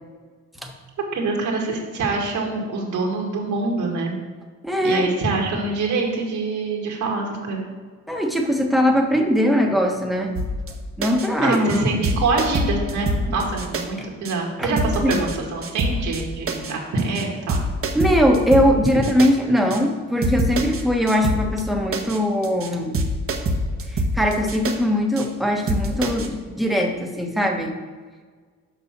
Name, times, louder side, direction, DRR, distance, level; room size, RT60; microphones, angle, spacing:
voice 1, 1.1-4.2 4.8-7.6 11.4-17.6, right 3 dB, 70° right, -1 dB, 2.2 m, -25 dB
voice 2, 4.6-5.1 8.1-10.3 11.0-12.0 14.0-14.1 14.6-14.7 15.0-15.2 17.9-22.9 23.9-27.7, equal, ahead, 1 dB, 1.3 m, -21 dB
sound 1, 10.4-10.7 11.0-11.3 11.5-11.8 12.0-13.8 14.2-14.3 14.8-15.4 15.6-16.2 16.5-16.7 17.0-17.2 17.5-19.3 19.7-19.8 20.2-20.8 21.1-21.6 21.9-22.2 22.4-22.7 22.9-24.7 25.2-25.3 25.7-26.3, right 1 dB, 45° right, 1.2 m, -25 dB
7.0 x 5.3 x 6.1 m, 1.5 s
cardioid pair, 90°, 30 cm